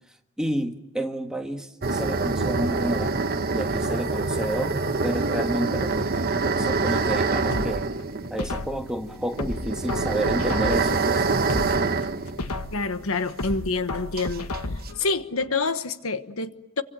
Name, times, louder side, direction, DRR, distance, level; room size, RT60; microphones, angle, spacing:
voice 1, 0.4-3.2 3.5-6.2 6.4-7.9 8.3-11.3, right 1 dB, 5° right, 1.5 m, -30 dB
sound 1, 1.8-13.3 13.5-13.6 14.2-14.9, right 3 dB, 40° right, 1.2 m, -26 dB
sound 2, 4.5-8.1, right 2 dB, 85° right, 2.0 m, -39 dB
sound 3, 7.5-8.9 9.4-11.0 11.4-12.9 13.4-15.0 15.4-15.5, left 2 dB, 85° left, 1.4 m, -33 dB
voice 2, 12.7-14.5 15.0-16.8, left 3 dB, 65° left, 1.2 m, -27 dB
27.5 x 24.5 x 7.5 m
head